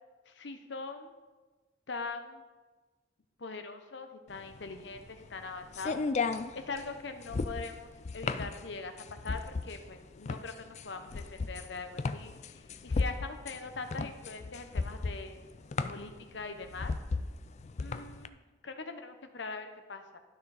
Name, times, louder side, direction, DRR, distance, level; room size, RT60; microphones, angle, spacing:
voice 1, 0.3-1.1 1.9-2.5 3.4-6.0 6.5-15.4 15.9-16.9 17.8-20.2, left 4 dB, 70° left, 7 dB, 0.9 m, -42 dB
sound 1, 4.4-18.3, left 4 dB, 40° left, 0.4 m, -35 dB
12.0 x 6.3 x 4.1 m, 1.3 s
head